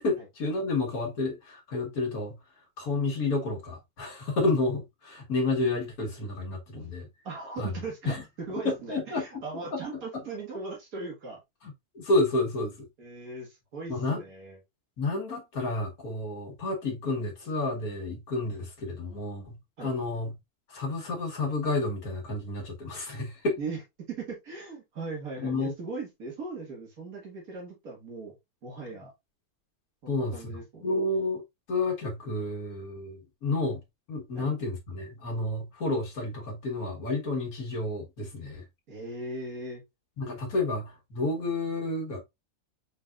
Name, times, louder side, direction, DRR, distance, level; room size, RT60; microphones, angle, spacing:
voice 1, 0.0-2.4 2.8-7.1 7.6-7.7 8.1-8.2 8.7-9.4 9.7-9.8 11.6-12.9 13.9-14.2 15.0-19.6 19.8-20.3 20.7-23.6 25.4-25.7 30.1-31.4 31.7-33.8 34.1-38.6 40.2-42.2, left 2 dB, 75° left, 1.8 m, -30 dB
voice 2, 7.2-8.1 8.5-11.4 13.0-14.6 19.8-19.9 23.6-23.8 24.1-28.4 28.6-29.1 30.0-30.8 34.4-34.5 38.9-39.8, right 3 dB, 75° right, 2.1 m, -39 dB
5.2 x 4.0 x 2.4 m
omnidirectional pair, 1.5 m